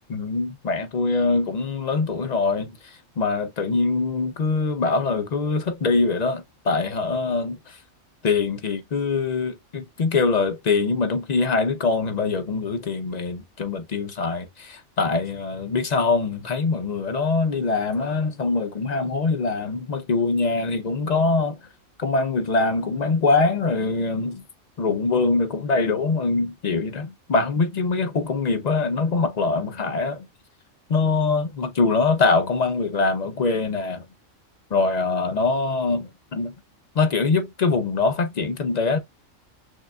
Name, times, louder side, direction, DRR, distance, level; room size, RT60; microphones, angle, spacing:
voice 1, 0.1-7.8 8.2-21.6 22.0-24.4 24.8-30.3 30.9-34.0 34.7-36.5 37.0-39.0, left 3 dB, 50° left, 0.5 m, -23 dB
6.3 x 2.2 x 2.2 m
omnidirectional pair, 1.3 m